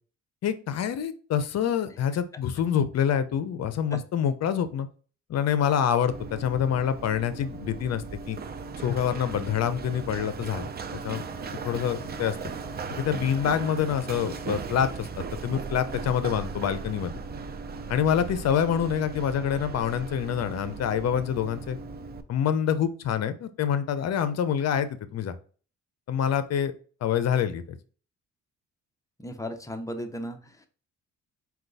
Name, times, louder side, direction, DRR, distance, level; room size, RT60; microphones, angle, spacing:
voice 1, 0.4-4.9 5.3-8.4 8.8-10.7 11.0-11.2 11.6-12.4 13.0-15.1 15.4-17.1 17.9-21.8 22.3-25.3 26.1-26.7 27.0-27.8, left 8 dB, 60° left, 12 dB, 0.6 m, -26 dB
Run, 6.1-22.2, right 5 dB, 35° right, 0.5 m, -37 dB
Wind instrument woodwind instrument, 11.1-14.7, left 2 dB, 70° right, 0.9 m, -50 dB
voice 2, 29.2-30.6, equal, 10° left, 5 dB, 0.7 m, -35 dB
4.4 x 2.3 x 3.9 m, 0.39 s
cardioid pair, 90°, 30 cm